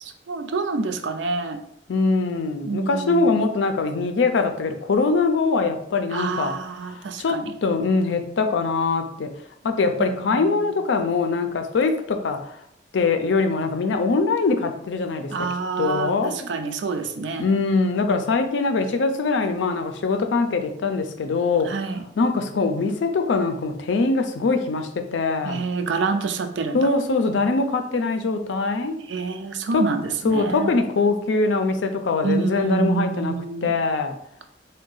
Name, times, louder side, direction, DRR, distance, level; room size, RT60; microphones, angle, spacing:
voice 1, 0.0-1.6 2.6-3.3 6.1-7.5 10.0-10.7 15.3-17.5 21.6-22.0 25.4-26.8 29.1-30.7 32.2-33.8, right 4 dB, 80° right, 7 dB, 0.4 m, -27 dB
voice 2, 1.9-6.5 6.8-9.3 9.6-12.5 12.9-15.3 15.8-16.5 17.4-21.7 22.2-25.6 26.7-29.0 29.7-29.8 30.2-33.3 33.6-34.1, left 3 dB, 85° left, 7 dB, 0.4 m, -22 dB
3.6 x 2.2 x 3.8 m, 0.72 s
head